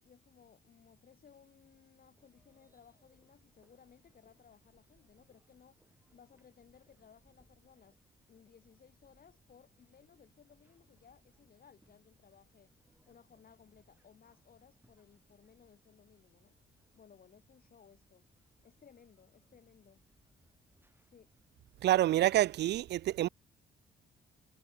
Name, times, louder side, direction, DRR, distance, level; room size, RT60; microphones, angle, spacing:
voice 1, 0.0-5.8 6.1-8.0 8.3-12.7 13.1-16.6 16.9-18.3 18.6-20.0 21.1-21.3, left 7 dB, 50° left, 2.9 m, -61 dB
sound 1, 2.1-21.8, right 1 dB, 10° right, 5.2 m, -73 dB
voice 2, 21.8-23.3, right 13 dB, 60° right, 0.4 m, -27 dB
cardioid pair, 90°, 20 cm